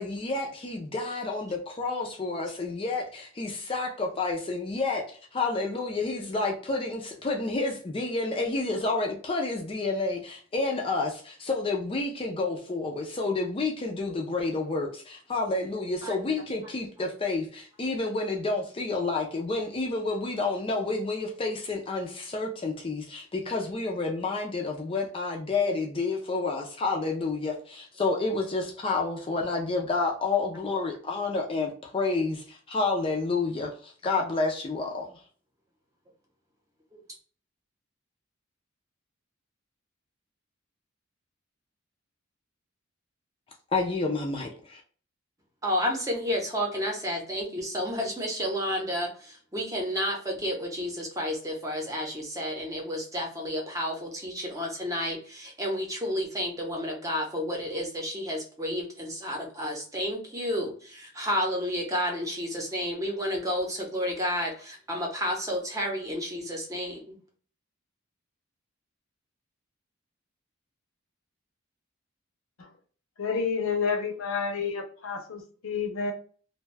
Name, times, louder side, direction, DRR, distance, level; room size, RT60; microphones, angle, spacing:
voice 1, 0.0-35.2 43.7-44.8, left 3 dB, 25° left, 0.4 m, -29 dB
voice 2, 45.6-67.1, equal, 15° right, 0.8 m, -31 dB
voice 3, 73.2-76.1, left 5 dB, 80° left, 0.6 m, -29 dB
2.6 x 2.2 x 3.2 m
head